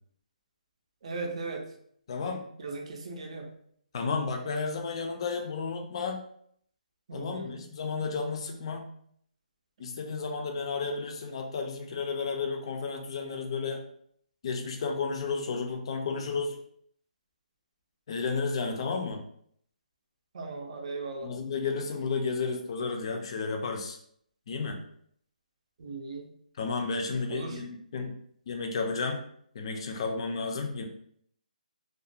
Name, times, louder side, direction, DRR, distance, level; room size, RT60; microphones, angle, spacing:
voice 1, 1.0-1.7 2.6-3.5 7.1-7.7 20.3-21.3 25.8-26.3 27.3-27.6, right 3 dB, 45° right, 2 dB, 0.5 m, -37 dB
voice 2, 2.1-2.5 3.9-6.2 7.1-8.8 9.8-13.8 14.4-16.6 18.1-19.2 21.2-24.0 24.5-24.8 26.6-28.1 28.5-29.2 29.5-30.8, left 4 dB, 40° left, 3 dB, 0.4 m, -32 dB
2.4 x 2.2 x 2.6 m, 0.66 s
hypercardioid pair, 170°, 5 cm